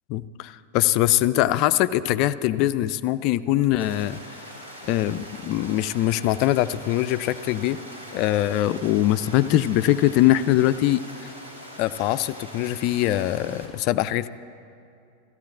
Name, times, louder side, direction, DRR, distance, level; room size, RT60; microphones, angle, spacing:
voice 1, 0.1-4.2 4.9-7.8 8.1-11.3 11.8-14.3, left 14 dB, 40° left, 14 dB, 0.3 m, -22 dB
sound 1, 3.8-13.7, equal, 85° right, 3.1 m, -42 dB
17.5 x 14.5 x 2.5 m, 2.6 s
figure-of-eight pair, 90°, 0 cm